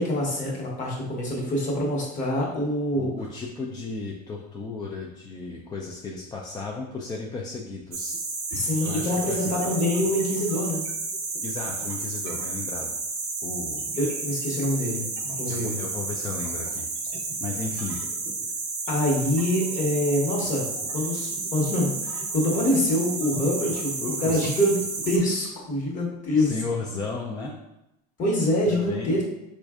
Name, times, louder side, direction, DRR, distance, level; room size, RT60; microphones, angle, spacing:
voice 1, 0.0-3.1 8.5-10.8 14.0-15.0 15.3-15.7 18.9-20.7 20.9-23.9 24.2-24.8 25.0-26.5 28.2-29.2, left 1 dB, 40° left, -2 dB, 1.2 m, -25 dB
voice 2, 3.0-8.2 8.8-9.5 11.4-13.0 13.4-13.9 15.5-16.9 17.4-18.0 23.7-24.4 26.4-27.5 28.7-29.2, left 4 dB, 20° left, -1 dB, 0.4 m, -34 dB
sound 1, 7.9-25.2, right 3 dB, 35° right, 0.7 m, -32 dB
4.0 x 2.5 x 2.4 m, 0.90 s
supercardioid pair, 105°, 20 cm